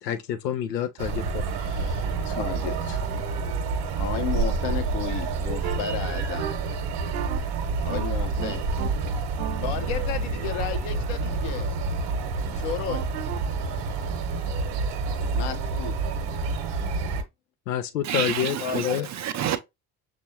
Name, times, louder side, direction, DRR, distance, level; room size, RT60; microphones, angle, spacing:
voice 1, 0.0-1.5 17.7-19.1, left 10 dB, 80° left, 0.6 m, -28 dB
sound 1, 1.0-17.2, right 4 dB, 50° right, 1.0 m, -28 dB
voice 2, 1.6-3.5 4.0-6.5 7.8-8.6 9.6-11.7 12.5-13.0 15.3-16.0 18.6-19.1, left 9 dB, 55° left, 0.9 m, -33 dB
sound 2, 5.6-5.8 6.4-6.5 7.1-7.4 7.9-8.0 8.4-8.9 9.4-11.6 12.9-13.4, right 11 dB, 80° right, 0.7 m, -36 dB
voice 3, 18.0-19.6, right 10 dB, 35° right, 0.6 m, -28 dB
6.1 x 2.5 x 2.7 m
figure-of-eight pair, 50°, 49 cm